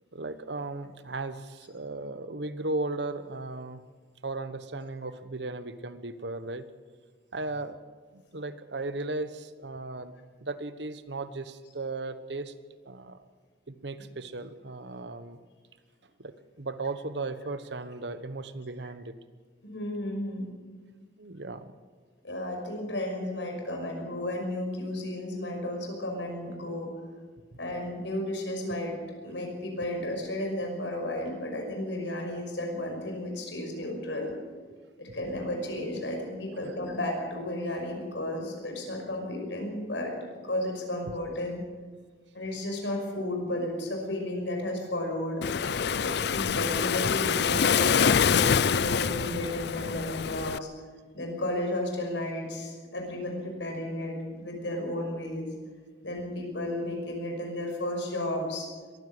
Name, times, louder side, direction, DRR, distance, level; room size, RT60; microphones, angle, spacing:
voice 1, 0.1-3.8 4.2-6.7 7.3-7.8 8.1-10.1 10.4-12.5 12.8-13.2 13.7-15.4 16.2-19.1 21.2-21.7 27.5-27.6 36.5-36.7, right 2 dB, 70° right, 12 dB, 1.2 m, -36 dB
voice 2, 19.6-20.5 22.2-26.9 27.6-29.0 29.2-34.3 35.0-41.6 42.3-45.4 46.0-50.7 51.1-55.5 56.0-58.7, left 1 dB, 85° left, 2 dB, 5.7 m, -33 dB
Waves surf, 45.4-50.6, left 7 dB, 65° left, 0.5 m, -25 dB
22.0 x 15.0 x 7.9 m, 1.5 s
head